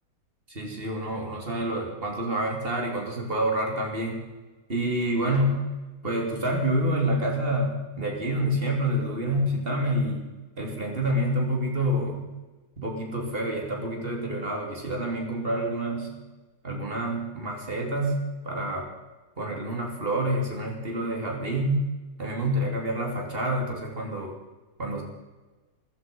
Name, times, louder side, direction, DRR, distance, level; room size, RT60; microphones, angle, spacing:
voice 1, 0.5-4.2 4.7-5.6 6.0-10.3 10.6-12.3 12.8-16.2 16.6-18.9 19.4-21.8 22.2-24.3 24.8-25.0, right 1 dB, 35° right, 1 dB, 3.4 m, -28 dB
15.5 x 14.5 x 5.5 m, 1.2 s
omnidirectional pair, 1.8 m